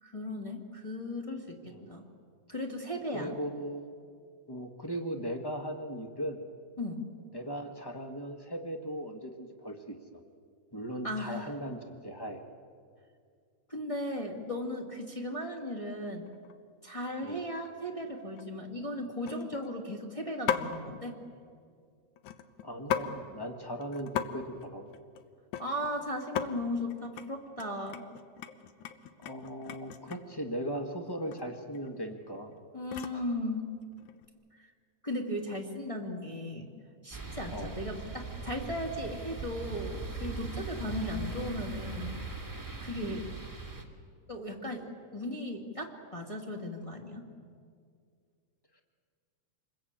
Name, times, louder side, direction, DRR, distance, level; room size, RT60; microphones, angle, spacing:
voice 1, 0.0-2.0 2.5-3.3 6.8-7.0 11.0-11.5 13.7-16.3 16.8-21.1 25.6-28.1 32.7-33.7 34.6-34.7 35.0-36.7 37.0-42.2 42.8-43.3 44.3-47.3, left 1 dB, 15° left, 0 dB, 1.8 m, -36 dB
voice 2, 3.1-3.9 4.5-6.4 7.3-10.0 10.7-12.4 17.2-17.4 22.6-24.9 29.2-32.5 33.1-33.4 37.5-37.7 43.0-43.2, equal, 35° left, 4 dB, 0.3 m, -38 dB
sound 1, 16.3-16.6 17.0-17.3 17.7-17.8 18.1-18.5 19.2-19.8 20.5-20.8 22.2-23.1 23.4-23.5 23.8-24.3 24.5-25.9 26.2-26.5 26.9-27.3 27.6-30.4 31.3-31.4 31.7-33.3 33.9-34.3, left 10 dB, 80° left, 2.4 m, -37 dB
sound 2, 37.1-43.8, right 4 dB, 10° right, 1.5 m, -40 dB
27.0 x 21.0 x 8.9 m, 2.2 s
omnidirectional pair, 3.4 m